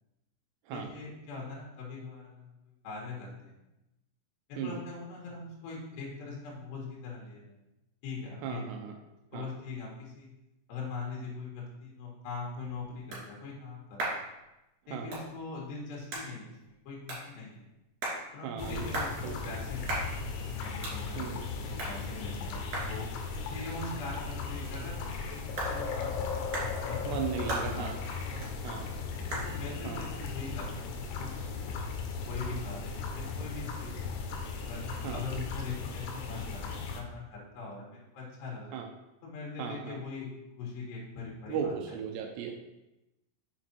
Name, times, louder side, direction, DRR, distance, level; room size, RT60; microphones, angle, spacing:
voice 1, 0.7-2.5 2.8-3.6 4.5-7.6 8.0-8.7 9.3-10.3 10.7-14.2 14.9-17.7 18.3-20.3 20.6-21.4 21.7-23.1 23.5-26.5 26.8-27.2 27.5-28.7 29.3-32.0 32.3-34.2 34.7-38.8 39.2-40.3 40.6-41.8 42.1-42.3, left 4 dB, 65° left, -3 dB, 3.4 m, -42 dB
voice 2, 8.4-8.9 9.3-9.5 14.9-15.1 18.4-18.9 19.2-19.5 21.2-21.4 27.0-28.0 28.6-28.8 29.8-30.0 35.0-35.2 38.7-38.9 39.6-40.0 41.5-42.7, right 7 dB, 85° right, 3 dB, 2.4 m, -36 dB
sound 1, 12.2-31.5, right 2 dB, 50° right, 3.7 m, -42 dB
sound 2, 18.6-37.0, left 4 dB, 85° left, 3.3 m, -37 dB
7.2 x 6.1 x 4.4 m, 0.93 s
omnidirectional pair, 5.9 m